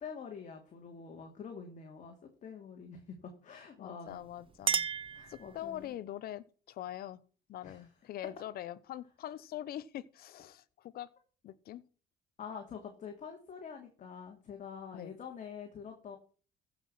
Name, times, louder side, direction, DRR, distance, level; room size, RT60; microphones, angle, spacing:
voice 1, 0.0-2.2 2.4-4.2 5.1-5.9 7.6-7.9 12.4-16.2, left 6 dB, 45° left, 2.7 m, -46 dB
voice 2, 3.8-4.9 5.3-7.2 7.5-11.1 11.4-11.8 14.9-15.1, left 12 dB, 65° left, 1.0 m, -43 dB
Chink clink, 4.1-6.0, right 7 dB, 30° right, 0.6 m, -35 dB
15.0 x 6.2 x 6.0 m
cardioid pair, 110°, 17 cm